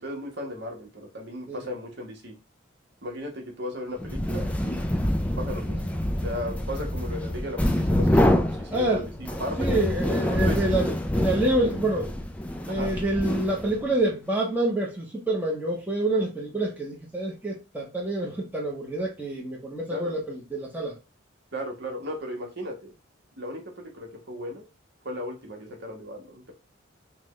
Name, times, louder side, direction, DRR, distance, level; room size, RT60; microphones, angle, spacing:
voice 1, 0.0-2.3 3.0-5.1 5.4-9.7 10.2-10.7 12.7-12.9 19.9-20.1 21.5-22.9 23.4-24.6 25.0-26.5, equal, 55° right, 1.2 m, -36 dB
sound 1, 4.0-13.9, left 1 dB, 5° left, 0.3 m, -26 dB
voice 2, 8.7-9.1 9.6-12.1 12.7-21.0, right 1 dB, 10° right, 0.9 m, -27 dB
5.9 x 2.3 x 3.1 m
head